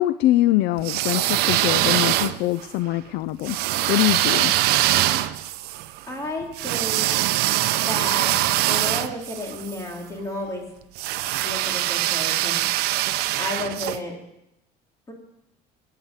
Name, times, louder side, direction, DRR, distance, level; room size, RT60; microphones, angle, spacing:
voice 1, 0.0-3.6 3.9-4.5, left 15 dB, 70° left, 16 dB, 0.5 m, -23 dB
sound 1, 0.8-2.7 3.4-9.8 11.0-14.0, right 15 dB, 70° right, 0.7 m, -23 dB
voice 2, 6.0-7.1 7.8-8.3 8.7-10.6 11.4-12.6 13.4-14.1 15.1-15.2, left 1 dB, 20° left, 0 dB, 3.5 m, -32 dB
14.5 x 9.2 x 8.2 m, 0.87 s
cardioid pair, 155°, 17 cm